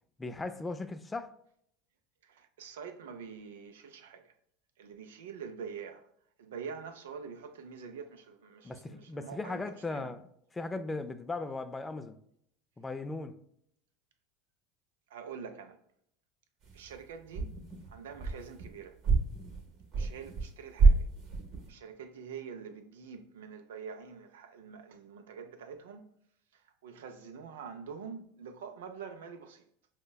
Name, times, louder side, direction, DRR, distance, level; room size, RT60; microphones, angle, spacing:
voice 1, 0.2-1.3 8.6-12.2 12.8-13.4, left 3 dB, 15° left, 0.3 m, -38 dB
voice 2, 2.2-4.3 4.8-6.1 6.4-9.6 9.9-10.1 15.1-15.8 16.7-17.5 17.9-19.0 19.9-21.1 21.7-26.0 26.5-29.6, right 6 dB, 80° right, 0.4 m, -45 dB
sound 1, 16.6-17.0 17.3-18.7 19.0-20.5 20.8-21.7, right 4 dB, 50° right, 0.8 m, -27 dB
5.2 x 2.1 x 2.2 m
hypercardioid pair, 90°, 0 cm